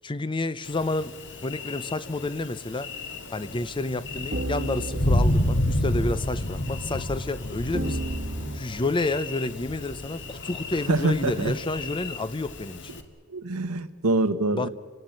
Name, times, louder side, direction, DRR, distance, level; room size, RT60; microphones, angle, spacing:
voice 1, 0.0-1.1 1.4-2.9 3.3-8.0 8.5-12.9 14.5-14.7, left 2 dB, 20° left, 0.6 m, -30 dB
Thunder, 0.6-13.0, left 1 dB, 55° left, 2.0 m, -31 dB
sound 1, 3.0-3.1 3.5-3.6 4.3-7.1 7.7-8.6, right 1 dB, 50° right, 1.4 m, -34 dB
voice 2, 10.9-11.5 13.3-14.7, right 2 dB, 80° right, 1.3 m, -25 dB
30.0 x 17.5 x 9.1 m
head